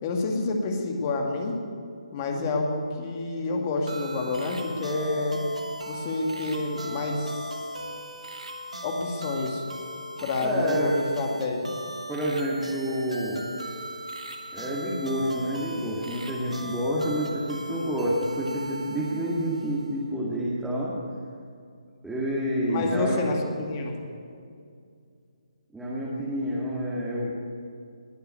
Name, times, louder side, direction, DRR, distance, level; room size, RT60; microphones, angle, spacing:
voice 1, 0.0-1.6 2.1-5.4 5.9-7.7 8.8-9.6 10.2-11.8 22.7-24.0, left 3 dB, 30° left, 2 dB, 2.1 m, -29 dB
sound 1, 3.9-20.0, equal, 85° right, 1.7 m, -38 dB
voice 2, 10.4-11.0 12.1-13.5 14.5-20.9 22.0-23.3 25.7-27.3, equal, 5° right, -8 dB, 2.0 m, -28 dB
20.5 x 6.8 x 8.3 m, 2.3 s
figure-of-eight pair, 145°, 3 cm